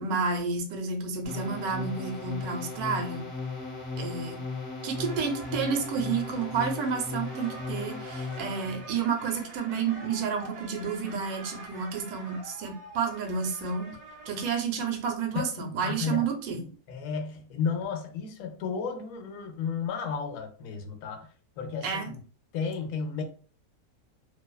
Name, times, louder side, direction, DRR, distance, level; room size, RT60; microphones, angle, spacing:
voice 1, 0.0-3.3 4.0-4.4 4.8-13.9 14.3-16.6 21.8-22.1, right 5 dB, 75° right, 4 dB, 1.0 m, -30 dB
sound 1, 1.2-8.8, left 4 dB, 50° left, 1.0 m, -36 dB
sound 2, 4.9-14.5, right 2 dB, 55° right, 0.7 m, -46 dB
voice 2, 15.3-21.3 21.6-22.2 22.5-23.2, left 5 dB, 70° left, 5 dB, 0.9 m, -33 dB
2.5 x 2.2 x 2.2 m, 0.40 s
omnidirectional pair, 1.6 m